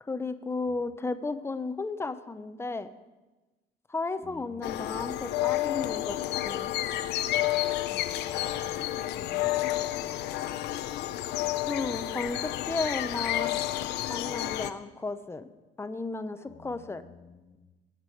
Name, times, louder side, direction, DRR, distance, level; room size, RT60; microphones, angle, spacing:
voice 1, 0.0-2.9 3.9-6.2 6.4-6.7 11.7-13.6 14.1-15.5 15.8-17.0, left 3 dB, 15° left, 11 dB, 0.7 m, -34 dB
voice 2, 4.2-5.1 7.9-10.8 16.5-17.6, left 5 dB, 35° left, 5 dB, 1.4 m, -48 dB
sound 1, 4.6-14.7, left 14 dB, 80° left, 0.6 m, -30 dB
19.5 x 7.5 x 4.6 m, 1.2 s
cardioid pair, 110°, 17 cm